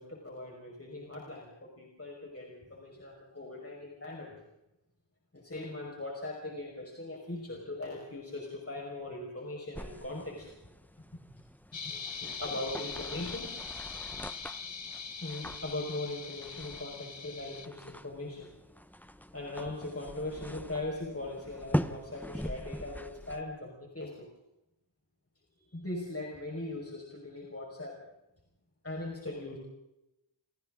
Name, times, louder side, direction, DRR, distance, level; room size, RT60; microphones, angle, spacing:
voice 1, 0.0-4.4 5.3-10.5 11.9-13.5 15.2-18.5 19.3-24.3 25.6-28.0 28.8-29.6, left 2 dB, 30° left, -2 dB, 5.3 m, -40 dB
sound 1, 9.7-23.4, equal, 5° left, 1.0 m, -42 dB
sound 2, 11.7-17.7, left 5 dB, 70° left, 1.5 m, -42 dB
30.0 x 28.0 x 3.8 m, 0.90 s
wide cardioid pair, 65°, 46 cm